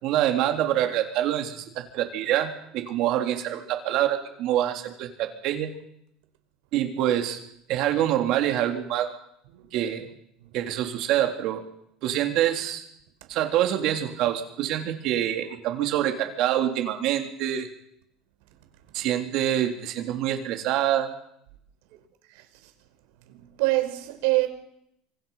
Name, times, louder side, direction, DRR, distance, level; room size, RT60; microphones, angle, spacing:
voice 1, 0.0-5.7 6.7-7.4 7.7-9.1 9.7-10.1 10.5-11.6 12.0-12.9 13.3-17.7 18.9-21.1, right 11 dB, 50° right, 3.5 m, -26 dB
voice 2, 22.3-22.7 23.3-24.5, right 20 dB, 80° right, 5.0 m, -26 dB
28.5 x 26.0 x 5.8 m
cardioid pair, 170°, 0 cm